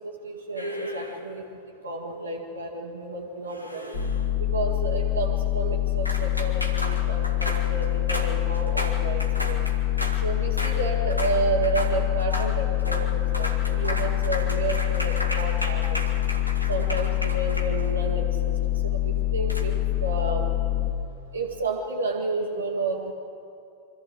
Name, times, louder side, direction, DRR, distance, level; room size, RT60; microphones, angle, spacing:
voice 1, 0.0-1.4 1.8-3.9 4.5-9.6 10.2-16.0 16.7-18.5 19.0-20.5 21.3-23.1, right 3 dB, 75° right, -4 dB, 1.7 m, -31 dB
sound 1, 0.6-1.4 3.5-4.4 6.1-10.2 10.6-10.8 11.1-11.4 11.6-11.9 12.2-12.5 12.8-13.1 13.3-18.1 19.5-19.6, equal, 90° left, 1.7 m, -34 dB
sound 2, 3.9-20.9, left 13 dB, 35° left, 2.3 m, -25 dB
24.5 x 14.5 x 7.8 m, 2.6 s
figure-of-eight pair, 90°, 0 cm